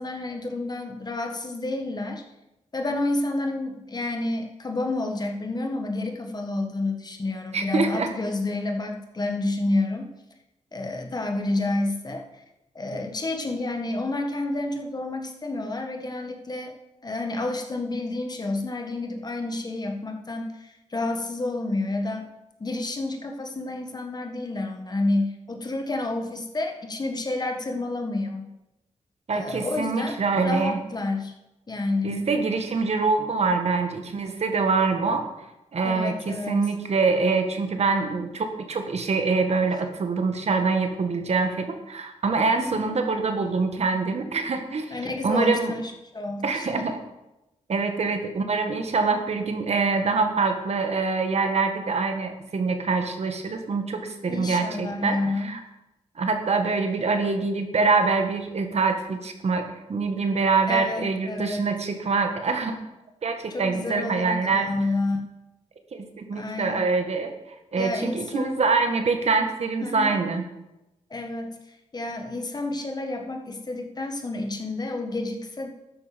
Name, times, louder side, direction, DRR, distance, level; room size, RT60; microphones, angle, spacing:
voice 1, 0.0-2.2 2.7-10.1 10.7-12.3 12.7-16.7 17.0-22.3 22.6-28.5 29.3-30.2 30.4-31.3 31.7-32.2 35.8-36.7 42.6-42.9 44.9-46.9 54.3-55.5 60.7-61.7 63.5-64.4 64.7-65.3 66.3-66.8 67.8-68.6 69.8-70.1 71.1-71.6 71.9-75.7, left 2 dB, 35° left, 3 dB, 1.7 m, -29 dB
voice 2, 7.5-8.1 29.3-30.8 32.0-35.3 35.7-45.0 45.2-45.7 46.4-47.0 47.7-55.6 56.2-62.7 63.2-64.7 65.9-67.3 67.7-70.4, right 4 dB, 60° right, 5 dB, 1.7 m, -25 dB
12.5 x 9.9 x 5.2 m, 0.96 s
wide cardioid pair, 100°, 12 cm